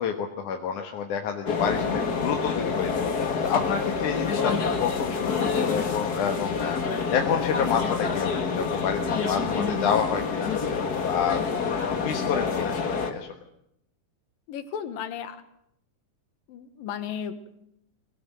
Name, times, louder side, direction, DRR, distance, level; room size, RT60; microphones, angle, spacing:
voice 1, 0.0-6.8 7.1-10.8 11.0-13.3, left 7 dB, 65° left, 4 dB, 2.8 m, -29 dB
sound 1, 1.5-13.1, left 5 dB, 35° left, 1.8 m, -27 dB
voice 2, 14.5-15.4 16.5-17.6, left 8 dB, 85° left, 11 dB, 3.2 m, -35 dB
22.0 x 17.5 x 9.3 m, 0.76 s
omnidirectional pair, 4.0 m